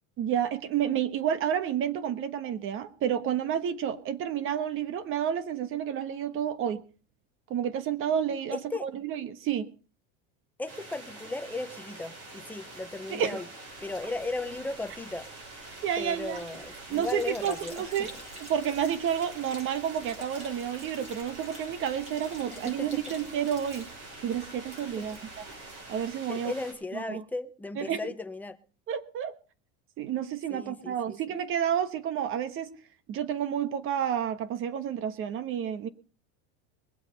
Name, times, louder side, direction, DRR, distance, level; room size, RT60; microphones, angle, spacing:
voice 1, 0.2-6.8 7.5-9.7 13.1-13.4 15.8-16.4 16.9-18.1 18.4-23.9 24.2-25.2 25.9-26.5 26.9-27.2 27.8-28.0 28.9-29.3 30.0-32.7 33.1-35.9, right 9 dB, 35° right, 14 dB, 1.3 m, -30 dB
voice 2, 8.5-8.9 10.6-13.5 13.8-15.3 16.0-18.1 22.5-23.0 25.0-25.1 26.3-28.6 30.5-31.1, left 2 dB, 5° left, 8 dB, 0.7 m, -36 dB
sound 1, 10.7-26.7, right 2 dB, 50° right, 6.6 m, -46 dB
Sink (filling or washing), 13.7-26.0, equal, 20° right, 4.2 m, -50 dB
22.0 x 8.0 x 5.3 m, 0.37 s
supercardioid pair, 155°, 35 cm